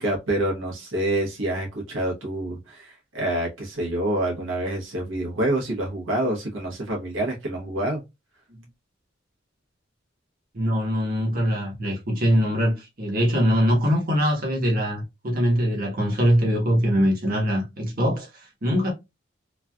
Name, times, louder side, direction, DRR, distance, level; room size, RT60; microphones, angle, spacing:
voice 1, 0.0-8.0, right 1 dB, 90° right, 1.1 m, -27 dB
voice 2, 10.5-18.9, equal, 50° right, 1.1 m, -22 dB
3.1 x 2.4 x 2.2 m
head